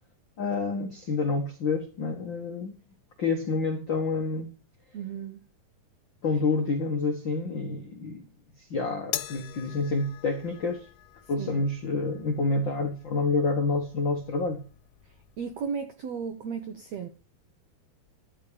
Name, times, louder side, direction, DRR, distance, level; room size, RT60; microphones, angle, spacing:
voice 1, 0.4-2.8 3.2-4.5 6.2-8.3 8.7-10.9 11.3-14.6, left 3 dB, 70° left, 1.1 m, -28 dB
voice 2, 4.9-5.4 11.4-11.6 15.4-17.1, right 6 dB, 90° right, 1.4 m, -35 dB
sound 1, 9.1-15.7, left 13 dB, 85° left, 2.6 m, -43 dB
12.5 x 5.1 x 8.4 m
omnidirectional pair, 4.5 m